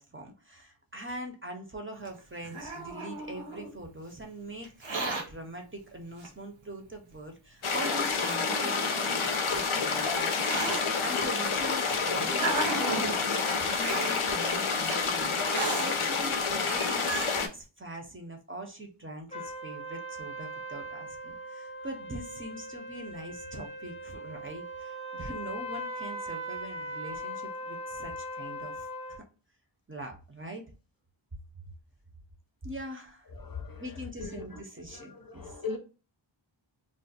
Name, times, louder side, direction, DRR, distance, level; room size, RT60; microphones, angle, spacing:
voice 1, 0.0-29.2 29.9-30.6 32.6-33.2 33.8-35.6, right 1 dB, 25° right, 0.6 m, -43 dB
Hiss, 2.1-3.7 4.6-5.2 6.2-6.3 7.1-7.2 7.8-8.8 9.6-10.8 11.7-13.2 13.8-14.1 14.8-15.0 15.4-15.9 16.4-16.5 16.6-17.4, right 3 dB, 75° right, 0.9 m, -34 dB
sound 1, 7.6-17.5, left 5 dB, 90° left, 0.6 m, -29 dB
sound 2, 19.3-29.2, equal, 15° left, 0.7 m, -39 dB
voice 2, 33.3-35.8, left 4 dB, 45° left, 0.6 m, -40 dB
2.4 x 2.0 x 3.9 m
wide cardioid pair, 45°, 48 cm